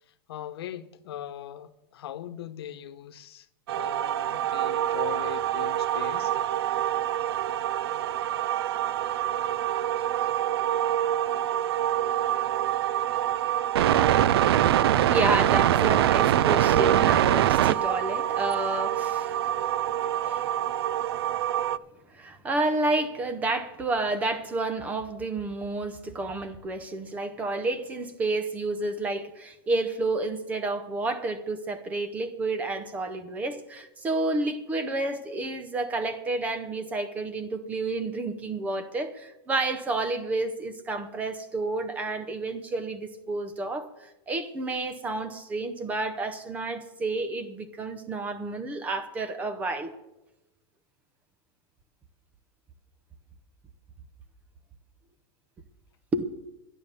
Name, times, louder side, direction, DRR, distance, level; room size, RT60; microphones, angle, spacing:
voice 1, 0.3-3.5 3.8-6.3, left 11 dB, 85° left, 1.0 m, -40 dB
sound 1, 3.7-21.8, right 11 dB, 85° right, 0.5 m, -25 dB
voice 2, 15.0-19.4 20.2-20.5 22.1-49.9 56.1-56.2, right 2 dB, 10° right, 0.7 m, -30 dB
12.0 x 10.5 x 6.9 m
supercardioid pair, 175°, 13 cm